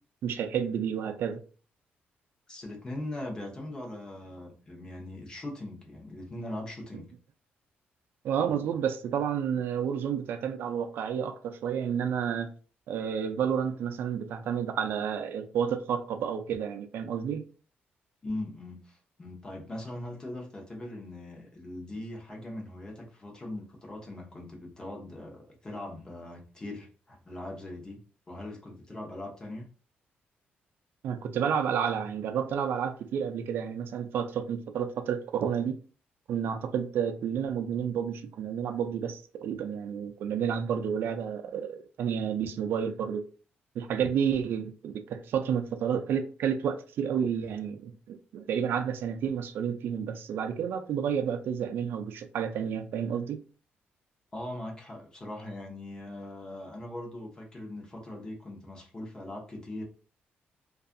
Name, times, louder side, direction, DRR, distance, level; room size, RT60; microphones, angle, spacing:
voice 1, 0.2-1.4 8.2-12.5 12.9-17.4 31.0-35.8 36.3-43.2 43.8-53.4, right 8 dB, 70° right, 0.3 m, -30 dB
voice 2, 2.5-7.1 18.2-28.0 28.3-29.7 54.3-59.8, left 1 dB, 20° left, 0.7 m, -40 dB
2.6 x 2.3 x 2.4 m
wide cardioid pair, 165°, 4 cm